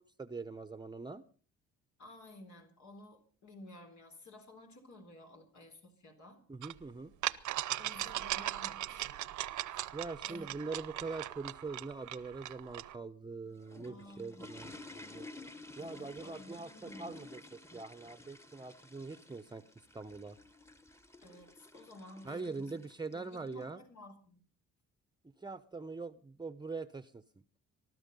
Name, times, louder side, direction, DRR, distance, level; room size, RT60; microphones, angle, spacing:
voice 1, 0.2-1.2 6.5-7.1 9.9-15.3 15.8-19.6 19.9-20.4 22.2-23.8 25.4-27.2, right 4 dB, 15° right, 12 dB, 0.8 m, -43 dB
voice 2, 2.0-6.4 7.8-9.3 10.2-10.5 13.8-14.7 15.8-17.2 21.2-22.8 23.1-24.4, left 1 dB, 70° left, 3 dB, 3.9 m, -54 dB
sound 1, 6.6-6.7 7.2-12.9, right 13 dB, 75° right, 0.9 m, -38 dB
sound 2, 13.3-23.6, left 2 dB, 10° left, 1.2 m, -53 dB
20.0 x 12.5 x 5.4 m, 0.41 s
cardioid pair, 90°, 30 cm